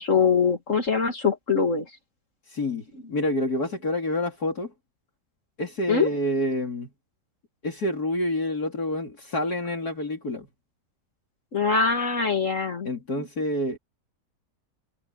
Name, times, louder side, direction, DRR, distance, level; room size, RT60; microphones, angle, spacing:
voice 1, 0.0-1.9 5.9-6.1 11.5-12.9, left 5 dB, 50° left, 2.5 m, -23 dB
voice 2, 2.5-4.7 5.6-6.9 7.6-10.5 12.8-13.8, left 1 dB, 65° left, 4.0 m, -28 dB
omnidirectional pair, 1.8 m